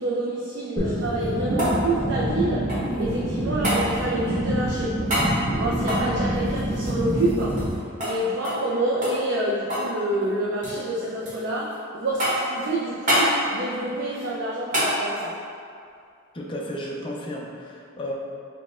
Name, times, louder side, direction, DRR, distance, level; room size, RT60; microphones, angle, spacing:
voice 1, 0.0-15.4, right 1 dB, 55° right, -5 dB, 0.4 m, -28 dB
sound 1, 0.8-7.7, right 1 dB, 10° left, 1.3 m, -26 dB
sound 2, 1.0-3.0 3.6-3.8 5.1-5.3 5.8-7.8 8.0-8.2 8.4-8.7 9.0-9.9 10.2-10.8 11.3-11.8 12.2-12.6 13.1-13.3 14.7-14.9 17.3-17.4, equal, 35° right, 1.1 m, -26 dB
voice 2, 16.3-18.1, equal, 25° left, -2 dB, 0.4 m, -33 dB
4.0 x 2.1 x 3.5 m, 2.4 s
head